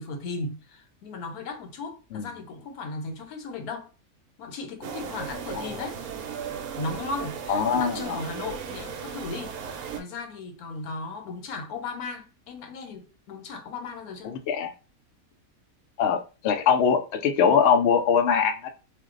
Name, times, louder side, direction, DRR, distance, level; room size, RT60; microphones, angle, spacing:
voice 1, 0.0-3.9 4.4-6.0 6.8-14.3, left 3 dB, 90° left, 1.2 m, -36 dB
sound 1, 4.8-10.0, right 7 dB, 80° right, 1.1 m, -36 dB
voice 2, 7.5-8.2 14.2-14.7 16.0-18.7, left 7 dB, 65° left, 0.7 m, -22 dB
2.6 x 2.2 x 3.6 m
omnidirectional pair, 1.5 m